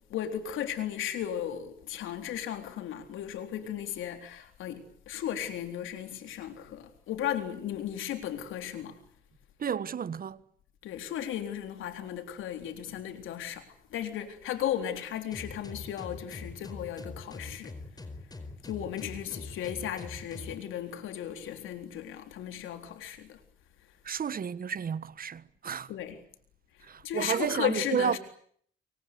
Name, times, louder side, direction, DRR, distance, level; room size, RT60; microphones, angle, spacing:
voice 1, 0.1-9.0 10.8-17.7 18.6-23.4 25.9-26.2 27.0-28.2, left 10 dB, 85° left, 3.9 m, -35 dB
voice 2, 9.6-10.4 24.0-25.9 26.8-28.2, right 7 dB, 45° right, 1.4 m, -32 dB
sound 1, 15.3-20.6, left 3 dB, 20° left, 4.7 m, -43 dB
28.0 x 24.0 x 8.1 m
cardioid pair, 90°, 20 cm